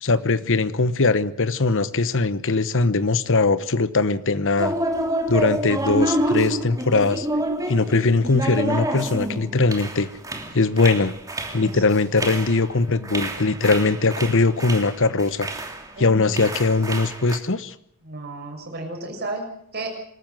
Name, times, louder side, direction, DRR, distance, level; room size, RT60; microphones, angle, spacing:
voice 1, 0.0-4.7 5.3-7.3 7.7-10.1 10.5-11.1 11.5-15.5 16.0-17.7, left 3 dB, 60° left, 14 dB, 1.1 m, -21 dB
sound 1, 4.6-15.9 16.2-17.4, right 1 dB, 15° right, 2.9 m, -28 dB
voice 2, 16.0-16.3 18.0-19.9, right 2 dB, 50° right, 3 dB, 6.8 m, -33 dB
26.5 x 14.0 x 7.8 m, 0.68 s
head